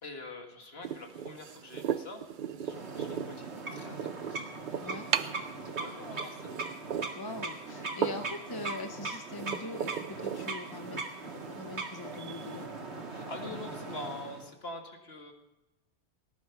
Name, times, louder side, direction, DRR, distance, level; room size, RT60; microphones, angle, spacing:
voice 1, 0.0-2.2 2.6-4.9 5.2-6.8 8.3-8.6 13.1-15.3, left 2 dB, 65° left, 3 dB, 2.2 m, -46 dB
sound 1, 0.8-12.7, right 8 dB, 55° right, 0.7 m, -38 dB
sound 2, 2.6-14.5, right 3 dB, 80° right, 2.2 m, -40 dB
voice 2, 7.2-11.0 11.5-12.7 13.9-14.0, left 2 dB, 25° left, 7 dB, 0.6 m, -42 dB
18.5 x 11.0 x 5.8 m, 0.98 s
omnidirectional pair, 1.1 m